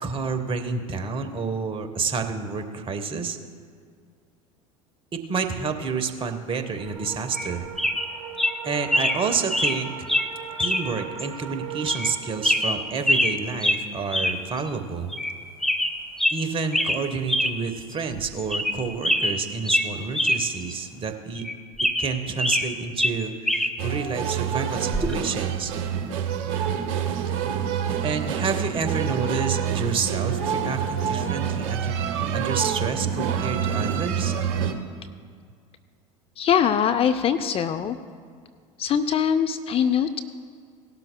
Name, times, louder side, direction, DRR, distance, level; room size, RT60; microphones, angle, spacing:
voice 1, 0.0-3.4 5.1-7.7 8.6-10.1 10.6-15.1 16.3-21.4 22.0-25.7 28.0-32.0 32.3-34.3, right 5 dB, 30° right, 7 dB, 1.1 m, -29 dB
sound 1, 6.8-21.1, right 8 dB, 80° right, 1.1 m, -42 dB
sound 2, 7.3-7.5 7.8-8.1 8.4-8.5 8.9-9.2 9.5-9.8 10.1-10.3 10.6-10.8 11.2-11.3 11.9-12.1 12.4-13.4 13.6-13.8 14.1-14.4 14.7-14.8 15.1-15.3 15.6-16.4 16.7-17.0 17.3-17.5 17.9-18.0 18.4-18.8 19.0-20.4 20.7-20.8 21.4-22.7 23.0-23.7 24.9-25.1, left 1 dB, ahead, 0.8 m, -23 dB
sound 3, 23.8-34.7, right 8 dB, 55° right, 1.1 m, -27 dB
voice 2, 36.4-38.0 38.8-40.2, left 8 dB, 35° left, 10 dB, 0.5 m, -22 dB
18.0 x 12.0 x 2.3 m, 2.1 s
hypercardioid pair, 80°, 18 cm